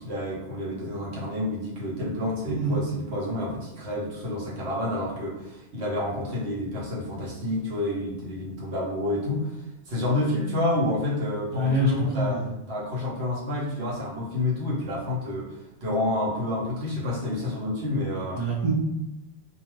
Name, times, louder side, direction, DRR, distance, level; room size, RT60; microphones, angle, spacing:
voice 1, 0.0-9.5 9.9-12.4 12.7-15.5 15.8-18.4, left 1 dB, 75° right, -5 dB, 1.1 m, -29 dB
voice 2, 2.5-2.8 11.5-12.5 18.3-18.7, right 2 dB, 45° right, -4 dB, 0.6 m, -26 dB
2.3 x 2.3 x 3.1 m, 0.93 s
omnidirectional pair, 1.1 m